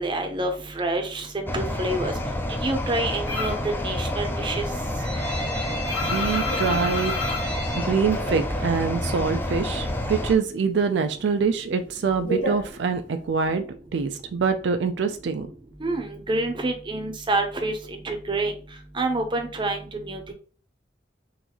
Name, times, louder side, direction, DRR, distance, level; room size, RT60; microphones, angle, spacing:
voice 1, 0.0-2.1 2.6-4.6 15.8-18.5 18.9-20.3, right 2 dB, 30° right, 5 dB, 0.6 m, -27 dB
sound 1, 1.5-10.3, left 1 dB, 10° left, 0.4 m, -29 dB
sound 2, 3.3-3.7 4.1-8.9 9.2-10.3 10.5-13.4, left 1 dB, 90° left, 1.7 m, -31 dB
voice 2, 6.0-7.2 7.7-13.6 13.9-15.5, right 5 dB, 75° right, 7 dB, 0.4 m, -25 dB
3.8 x 2.6 x 2.9 m, 0.40 s
head